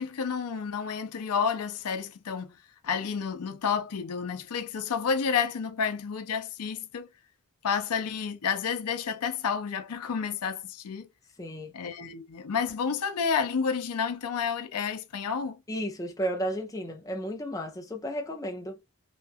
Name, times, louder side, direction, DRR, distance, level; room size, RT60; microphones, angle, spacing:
voice 1, 0.0-2.6 2.8-7.1 7.6-11.1 11.7-15.6, left 6 dB, 90° left, 0.5 m, -30 dB
voice 2, 11.4-11.7 15.7-18.8, equal, 15° left, 0.4 m, -33 dB
2.9 x 2.3 x 2.5 m
head